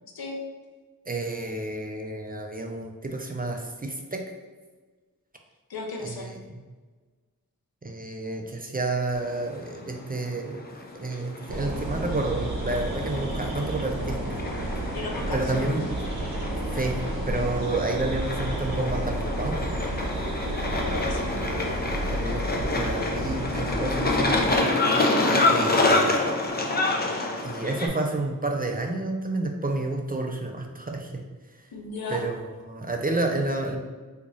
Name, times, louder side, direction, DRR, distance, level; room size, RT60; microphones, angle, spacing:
voice 1, 1.1-4.2 6.0-6.4 7.8-10.6 10.9-14.4 15.3-15.9 16.7-17.0 17.3-19.6 21.4-21.9 22.1-24.4 25.4-26.2 27.4-31.1 32.1-33.8, right 2 dB, 25° right, 2 dB, 0.4 m, -30 dB
voice 2, 5.7-6.4 14.9-15.7 20.7-21.4 25.1-25.4 31.7-32.2, left 3 dB, 75° left, 0 dB, 0.7 m, -35 dB
sound 1, 9.1-27.9, left 2 dB, 25° left, 0.5 m, -28 dB
sound 2, 11.5-24.6, right 1 dB, 80° right, 0.8 m, -31 dB
2.9 x 2.5 x 3.8 m, 1.4 s
wide cardioid pair, 55°, 36 cm